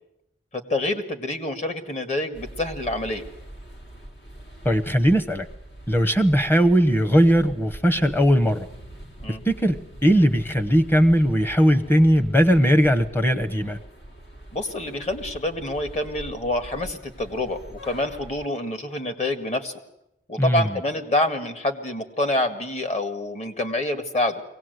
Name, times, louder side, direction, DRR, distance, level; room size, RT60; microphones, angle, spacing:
voice 1, 0.5-3.2 9.2-9.4 14.5-19.7 20.3-24.4, left 1 dB, 40° left, 6 dB, 1.8 m, -27 dB
sound 1, 2.3-18.5, right 1 dB, 65° left, 2.8 m, -43 dB
voice 2, 4.6-5.5 5.9-8.7 9.4-13.8 20.4-20.7, equal, 10° left, 8 dB, 1.0 m, -19 dB
23.5 x 18.0 x 8.0 m, 0.86 s
head